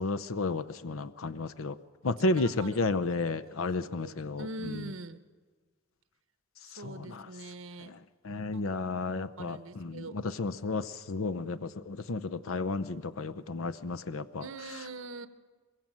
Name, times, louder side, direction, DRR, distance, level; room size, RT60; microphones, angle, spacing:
voice 1, 0.0-1.8 2.0-4.8 6.8-7.3 7.8-8.0 8.2-14.4, left 3 dB, 90° left, 11 dB, 0.7 m, -32 dB
voice 2, 2.3-2.8 3.5-3.6 4.0-5.2 6.6-7.9 8.5-8.7 9.0-10.2 14.4-15.3, right 2 dB, 90° right, 10 dB, 1.1 m, -43 dB
23.5 x 23.0 x 7.7 m, 1.5 s
head